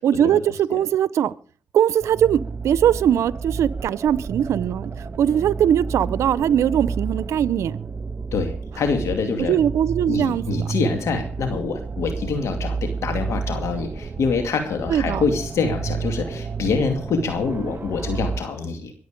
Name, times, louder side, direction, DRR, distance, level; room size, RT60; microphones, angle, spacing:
voice 1, 0.0-1.3 1.7-4.9 5.2-7.8 9.4-10.7 14.9-15.2, right 10 dB, 90° right, 0.6 m, -20 dB
sound 1, 2.0-18.4, right 5 dB, 45° right, 1.5 m, -31 dB
voice 2, 8.3-9.5 10.1-18.9, left 4 dB, 80° left, 2.4 m, -25 dB
23.0 x 8.2 x 5.1 m
cardioid pair, 55°, 5 cm